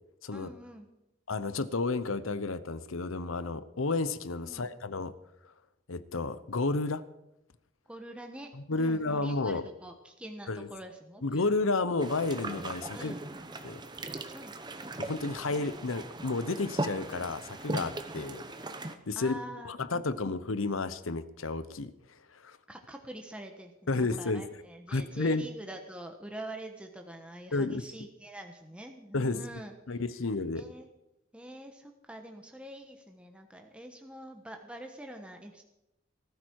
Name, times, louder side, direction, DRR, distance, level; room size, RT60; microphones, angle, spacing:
voice 1, 0.3-0.9 4.5-4.7 7.9-11.4 12.9-13.2 14.3-14.6 19.1-19.7 20.1-20.3 22.7-29.7 30.5-30.9 31.3-35.6, right 1 dB, 5° right, 3 dB, 1.2 m, -45 dB
voice 2, 1.3-5.1 5.9-7.0 8.5-9.7 10.5-10.7 11.2-13.1 13.6-13.8 15.0-18.4 18.9-19.4 19.6-21.9 22.3-22.6 23.9-24.6 24.9-25.5 27.5-27.8 29.1-29.4 29.9-30.7, left 3 dB, 90° left, 14 dB, 0.9 m, -31 dB
sound 1, 12.0-18.9, right 2 dB, 20° right, 0.9 m, -38 dB
19.5 x 13.0 x 4.7 m, 0.89 s
head